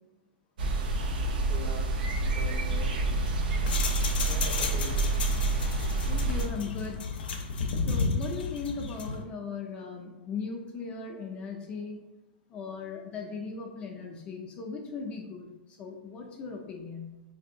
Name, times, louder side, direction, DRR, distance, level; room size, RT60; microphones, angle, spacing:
sound 1, 0.6-6.5, right 3 dB, 70° right, 0.5 m, -28 dB
voice 1, 1.3-3.0 4.3-5.1, equal, 25° right, 2 dB, 0.6 m, -41 dB
sound 2, 3.0-9.2, left 4 dB, 90° left, 0.5 m, -33 dB
voice 2, 6.1-7.1 7.9-12.0 12.5-17.2, left 5 dB, 25° left, 1 dB, 0.3 m, -38 dB
3.3 x 2.6 x 2.6 m, 1.0 s
supercardioid pair, 155°, 5 cm